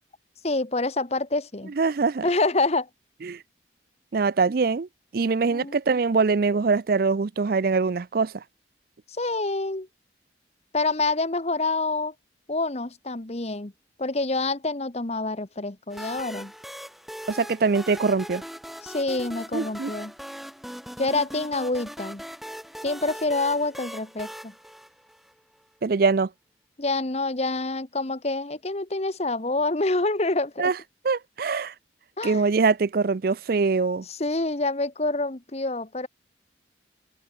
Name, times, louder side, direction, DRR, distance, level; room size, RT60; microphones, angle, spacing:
voice 1, 0.4-1.7 2.2-2.9 5.5-5.8 9.2-9.9 10.7-12.1 12.5-13.7 14.0-16.5 18.8-20.1 21.0-22.2 22.8-24.5 26.8-30.7 32.2-32.5 34.1-36.1, left 2 dB, 35° left, 1.1 m, -27 dB
voice 2, 1.8-2.2 3.2-3.4 4.1-4.9 5.1-8.4 17.3-18.4 19.5-19.9 25.8-26.3 30.6-30.8 31.0-31.7 32.2-34.0, right 4 dB, 50° right, 0.4 m, -23 dB
sound 1, 15.9-25.5, equal, ahead, 4.7 m, -40 dB
open air
head